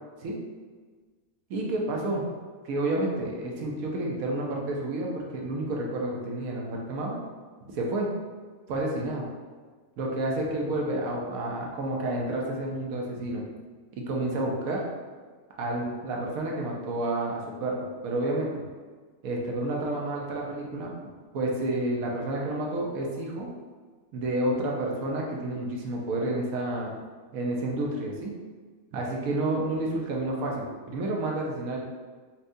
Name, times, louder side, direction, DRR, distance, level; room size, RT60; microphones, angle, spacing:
voice 1, 1.5-2.2 2.6-7.2 7.7-8.1 8.7-9.2 10.0-13.4 14.0-14.8 15.6-18.6 19.2-20.9 21.3-23.5 24.1-27.0 27.3-28.3 28.9-31.8, right 1 dB, 70° right, -1 dB, 1.1 m, -30 dB
4.3 x 2.3 x 2.6 m, 1.4 s
omnidirectional pair, 1.6 m